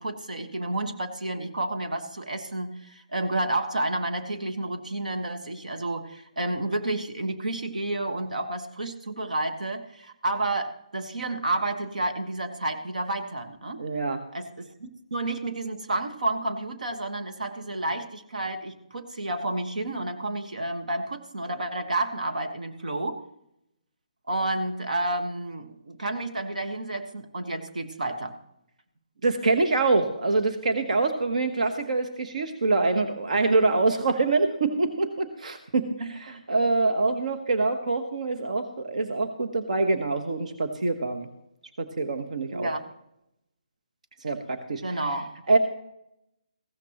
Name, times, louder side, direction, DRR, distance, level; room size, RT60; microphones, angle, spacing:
voice 1, 0.0-13.8 14.3-23.2 24.3-28.3 36.0-36.4 42.5-42.8 44.8-45.3, right 2 dB, 85° right, 6 dB, 1.4 m, -30 dB
voice 2, 13.8-14.2 29.2-35.9 36.2-41.3 41.8-42.7 44.2-44.8 45.5-45.6, right 3 dB, 70° right, 7 dB, 1.2 m, -25 dB
15.5 x 13.0 x 3.0 m, 0.81 s
hypercardioid pair, 160°, 4 cm